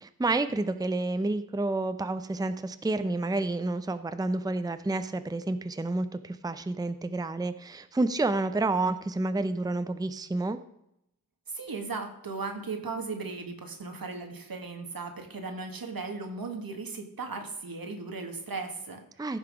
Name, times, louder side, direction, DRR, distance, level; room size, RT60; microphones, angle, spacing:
voice 1, 0.0-10.6 19.2-19.4, right 2 dB, 10° right, 11 dB, 0.5 m, -29 dB
voice 2, 11.5-19.0, right 4 dB, 80° right, 4 dB, 1.7 m, -37 dB
15.0 x 5.8 x 4.9 m, 0.80 s
wide cardioid pair, 90°, 35 cm